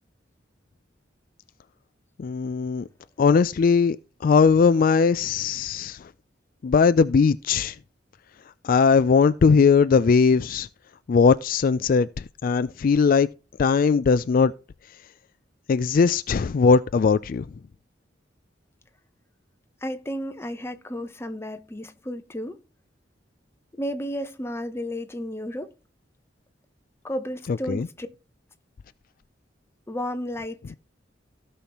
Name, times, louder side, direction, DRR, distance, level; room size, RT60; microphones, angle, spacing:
voice 1, 2.2-2.9 3.2-4.0 4.2-6.1 6.6-7.8 8.6-10.7 11.1-13.3 13.6-14.5 15.7-17.5 27.5-27.9, left 5 dB, 50° left, 0.3 m, -19 dB
voice 2, 19.8-22.6 23.8-25.7 27.0-28.1 29.9-30.7, equal, 15° left, 0.8 m, -32 dB
16.0 x 5.6 x 3.0 m
head